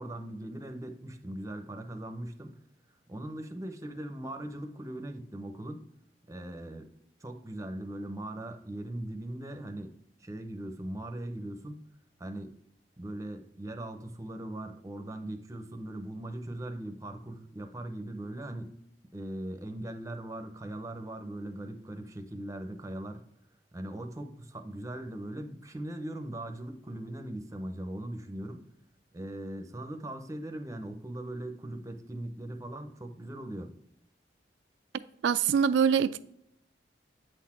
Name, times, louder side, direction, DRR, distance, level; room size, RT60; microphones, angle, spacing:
voice 1, 0.0-2.6 3.1-5.8 6.3-6.9 7.2-9.9 10.2-11.8 12.2-12.5 13.0-18.8 19.1-23.2 23.7-28.6 29.1-33.7, right 1 dB, 20° right, 0.7 m, -40 dB
voice 2, 35.2-36.2, right 7 dB, 90° right, 0.3 m, -24 dB
8.0 x 4.1 x 4.3 m
head